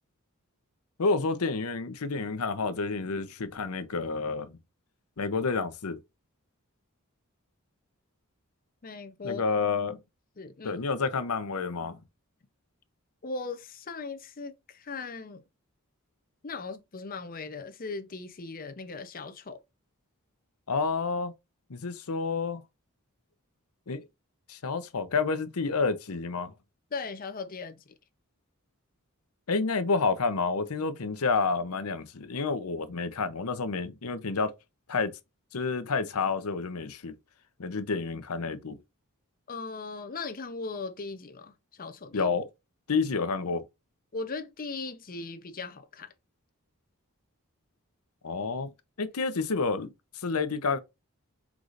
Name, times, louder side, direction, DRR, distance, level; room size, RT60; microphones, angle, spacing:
voice 1, 1.0-4.6 5.2-6.0 9.2-10.0 10.6-12.0 20.7-21.3 21.7-22.6 23.9-24.0 24.5-26.5 29.5-34.5 34.9-35.1 35.5-37.2 37.6-38.8 42.1-42.5 42.9-43.6 48.2-48.7 49.0-50.8, left 4 dB, 80° left, 0.7 m, -29 dB
voice 2, 8.8-9.4 10.4-10.8 13.2-15.4 16.4-19.6 26.9-27.8 39.5-42.3 44.1-46.1, left 4 dB, 40° left, 0.7 m, -38 dB
4.7 x 3.9 x 2.5 m
head